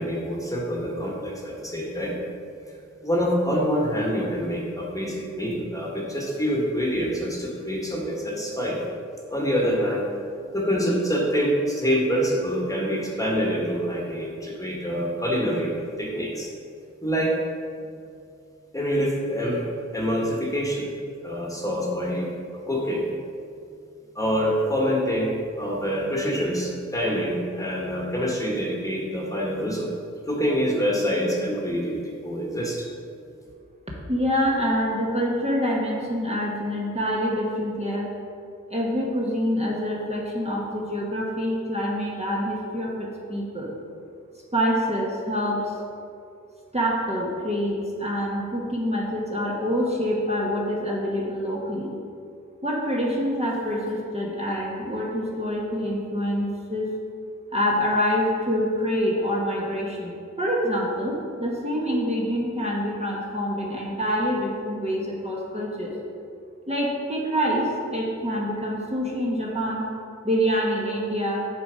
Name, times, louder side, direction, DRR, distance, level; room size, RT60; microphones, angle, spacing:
voice 1, 0.0-2.2 3.0-8.8 9.3-10.0 10.5-16.5 17.0-17.3 18.7-19.7 19.9-20.9 21.2-22.3 22.7-23.0 24.1-25.3 25.6-29.9 30.3-32.9, equal, 10° left, -2 dB, 1.5 m, -26 dB
voice 2, 34.1-38.1 38.7-43.7 44.5-45.8 46.7-51.9 52.6-56.9 57.5-65.9 66.7-69.9 70.2-71.5, equal, 20° right, -4 dB, 1.3 m, -26 dB
7.2 x 4.0 x 5.0 m, 2.4 s
cardioid pair, 40°, 30 cm